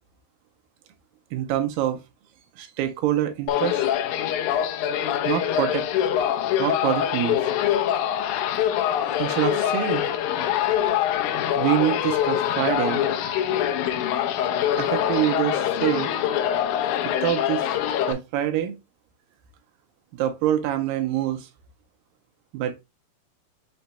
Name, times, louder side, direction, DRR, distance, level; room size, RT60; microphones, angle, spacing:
voice 1, 1.3-2.0 2.6-3.8 5.3-5.8 6.6-7.4 9.2-10.1 11.6-13.0 14.8-16.1 17.2-17.7 18.1-18.8 20.1-21.5 22.5-22.8, right 11 dB, 85° right, 2.3 m, -25 dB
sound 1, 3.5-18.1, left 10 dB, 80° left, 1.7 m, -24 dB
5.9 x 2.2 x 4.1 m
omnidirectional pair, 4.1 m